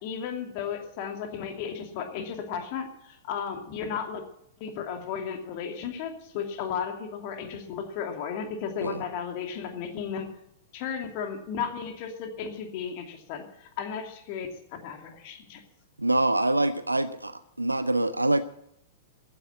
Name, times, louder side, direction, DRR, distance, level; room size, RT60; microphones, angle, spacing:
voice 1, 0.0-4.2 4.6-10.3 10.7-15.6, left 7 dB, 40° left, 4 dB, 2.6 m, -34 dB
voice 2, 16.0-18.4, right 2 dB, 85° right, 14 dB, 0.6 m, -25 dB
14.5 x 9.9 x 8.8 m, 0.76 s
figure-of-eight pair, 100°, 0 cm